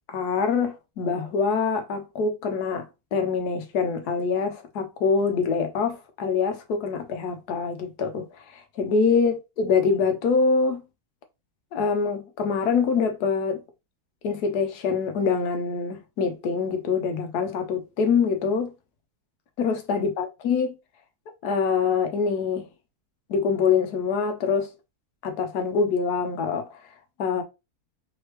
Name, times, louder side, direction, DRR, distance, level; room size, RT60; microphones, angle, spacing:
voice 1, 0.1-10.8 11.7-13.6 14.2-18.7 19.6-20.7 21.4-22.7 23.3-24.7 25.2-26.8 27.2-27.4, left 5 dB, 80° left, 1.3 m, -25 dB
3.4 x 3.2 x 3.1 m
omnidirectional pair, 1.7 m